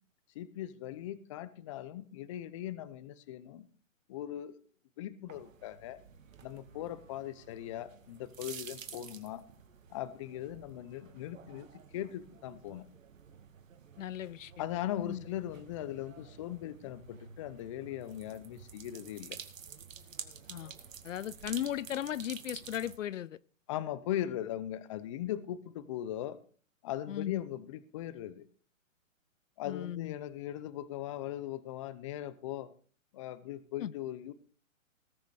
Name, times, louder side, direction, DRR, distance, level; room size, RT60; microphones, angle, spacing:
voice 1, 0.3-3.7 4.1-4.6 5.0-6.0 6.4-9.4 9.9-12.9 14.6-19.4 23.7-26.4 26.8-28.5 29.6-32.7 33.1-34.3, left 12 dB, 25° left, 0.6 m, -39 dB
sound 1, 5.3-23.0, right 7 dB, 70° right, 2.2 m, -50 dB
voice 2, 14.0-14.5 15.0-15.2 20.5-20.7 21.0-23.4 27.1-27.4 29.6-30.1 33.8-33.9, left 11 dB, 70° left, 0.6 m, -37 dB
19.0 x 6.6 x 4.9 m
hypercardioid pair, 145°, 40 cm